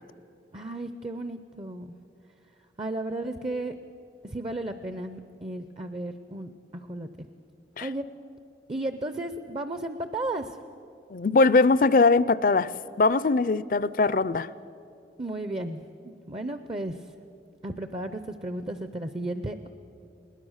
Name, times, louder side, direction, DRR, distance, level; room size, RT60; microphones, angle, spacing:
voice 1, 0.5-1.9 2.8-3.7 4.2-7.3 7.8-8.1 8.7-10.6 15.2-17.0 17.6-19.7, right 1 dB, 30° right, 10 dB, 0.5 m, -34 dB
voice 2, 11.1-12.7 13.0-14.5, left 3 dB, 50° left, 17 dB, 0.4 m, -21 dB
21.0 x 19.5 x 6.4 m, 2.6 s
head